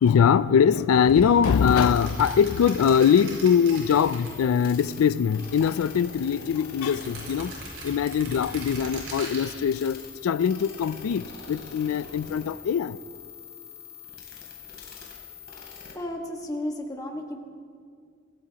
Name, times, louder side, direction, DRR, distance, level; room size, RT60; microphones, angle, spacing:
voice 1, 0.0-7.6 7.8-13.0, left 7 dB, 90° left, 0.3 m, -22 dB
sound 1, 1.0-4.8 5.1-6.2 6.7-9.5, right 2 dB, 85° right, 5.2 m, -40 dB
sound 2, 1.5-16.0, left 6 dB, 50° left, 3.1 m, -44 dB
voice 2, 15.9-17.4, left 1 dB, 15° left, 1.6 m, -33 dB
24.5 x 16.5 x 2.9 m
head